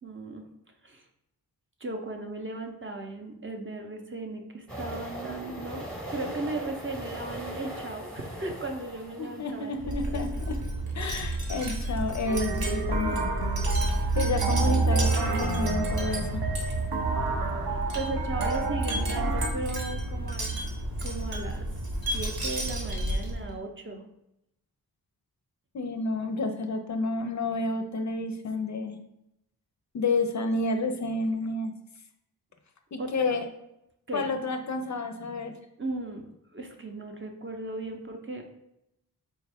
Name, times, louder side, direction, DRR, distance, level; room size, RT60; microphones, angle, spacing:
voice 1, 0.0-0.4 0.8-1.1 1.8-10.3 11.0-11.1 17.9-21.7 22.1-24.0 33.0-33.4 34.1-34.3 35.8-38.4, right 2 dB, 30° right, 3 dB, 0.6 m, -37 dB
sound 1, 4.7-10.5, right 1 dB, ahead, 0.9 m, -40 dB
voice 2, 9.2-10.6 10.9-13.3 14.1-16.4 25.7-29.0 29.9-31.7 32.9-33.4 34.1-35.5, left 3 dB, 45° left, 6 dB, 0.4 m, -30 dB
Wind chime, 9.8-23.5, right 2 dB, 65° right, 1.0 m, -29 dB
sound 2, 12.3-19.5, right 4 dB, 85° right, 0.6 m, -33 dB
4.3 x 2.3 x 3.4 m, 0.84 s
cardioid pair, 60°, 39 cm